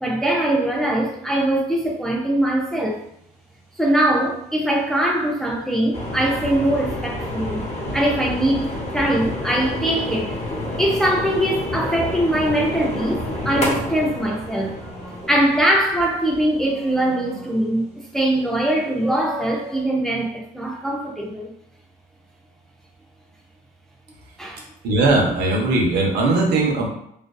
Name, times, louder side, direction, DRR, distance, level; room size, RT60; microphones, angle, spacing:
voice 1, 0.0-3.0 3.8-7.6 7.9-10.4 10.8-14.8 15.3-17.9 18.1-21.5 24.4-24.6, right 1 dB, 5° left, 0.4 m, -22 dB
sound 1, 2.9-3.2 12.5-14.0 14.4-16.1 16.5-18.1 18.4-18.5 18.9-19.8, right 1 dB, 15° right, 0.8 m, -39 dB
sound 2, 5.9-17.1, left 1 dB, 40° left, 0.7 m, -29 dB
voice 2, 24.8-26.9, right 2 dB, 80° right, 0.7 m, -19 dB
2.5 x 2.2 x 2.2 m
cardioid pair, 110°, 17 cm